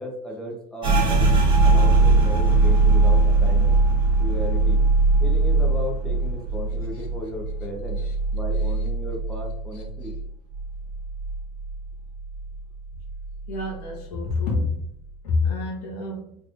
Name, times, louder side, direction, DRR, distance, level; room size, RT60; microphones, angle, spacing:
voice 1, 0.0-1.3 1.6-3.8 4.2-4.8 5.2-8.0 8.3-10.1, equal, 5° left, -1 dB, 0.8 m, -35 dB
sound 1, 0.8-10.2 10.5-11.8 12.1-12.6 13.0-13.6, right 3 dB, 25° right, 1.1 m, -20 dB
voice 2, 9.7-10.1 13.5-14.9 15.2-16.4, left 3 dB, 75° left, 0 dB, 1.2 m, -27 dB
3.5 x 3.4 x 2.5 m, 0.72 s
supercardioid pair, 120°, 21 cm